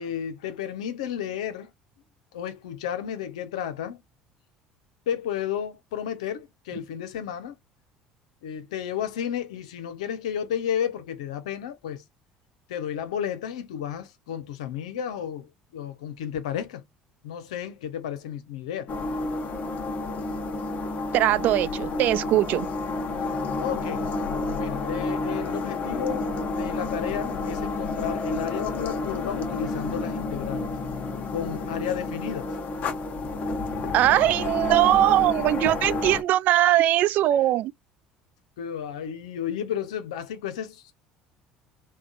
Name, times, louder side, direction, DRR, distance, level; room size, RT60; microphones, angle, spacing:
voice 1, 0.0-1.7 2.3-4.0 5.1-7.6 8.4-12.0 12.7-16.8 17.2-18.9 23.6-24.1 24.6-30.7 31.3-32.5 38.6-40.9, left 9 dB, 85° left, 0.7 m, -32 dB
sound 1, 18.9-36.2, left 3 dB, 50° left, 1.1 m, -30 dB
voice 2, 21.1-22.7 33.9-37.7, right 14 dB, 60° right, 0.4 m, -21 dB
3.6 x 2.3 x 2.4 m
hypercardioid pair, 80°, 3 cm